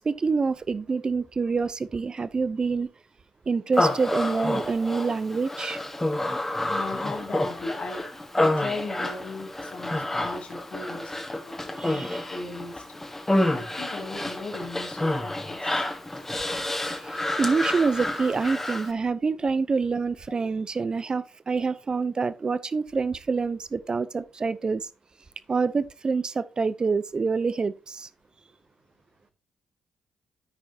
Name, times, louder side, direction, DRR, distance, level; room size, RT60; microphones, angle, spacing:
voice 1, 0.0-2.9 3.5-5.8 11.8-12.2 16.9-24.9 25.5-28.1, right 4 dB, 35° right, 0.6 m, -26 dB
Human voice, 3.7-18.9, left 1 dB, 15° left, 1.4 m, -29 dB
voice 2, 6.7-8.1 8.3-13.0 13.5-15.8, left 3 dB, 55° left, 2.5 m, -37 dB
13.0 x 4.9 x 2.8 m
supercardioid pair, 65°, 2 cm